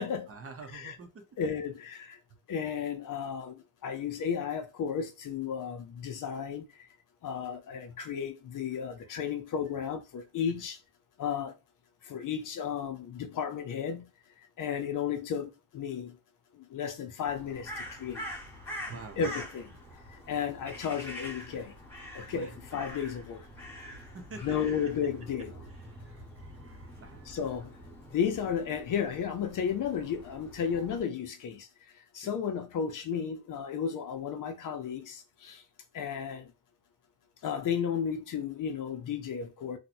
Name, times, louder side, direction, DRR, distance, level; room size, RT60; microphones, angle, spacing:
voice 1, 0.3-1.3 9.0-9.3 10.5-10.6 18.8-19.2 22.3-22.6 24.0-24.6 25.7-27.3 32.2-32.3, right 4 dB, 35° right, 0.7 m, -48 dB
voice 2, 1.4-2.2 2.5-6.6 7.2-10.8 11.2-11.5 12.1-14.1 14.6-16.1 16.7-18.2 19.2-19.7 20.3-21.7 22.1-23.4 24.4-25.5 27.3-27.7 28.1-31.7 32.1-35.6 35.9-36.5 37.4-39.8, left 7 dB, 55° left, 0.7 m, -33 dB
Crow, 17.3-31.0, equal, 5° left, 1.2 m, -45 dB
2.9 x 2.2 x 4.1 m
cardioid pair, 140°, 38 cm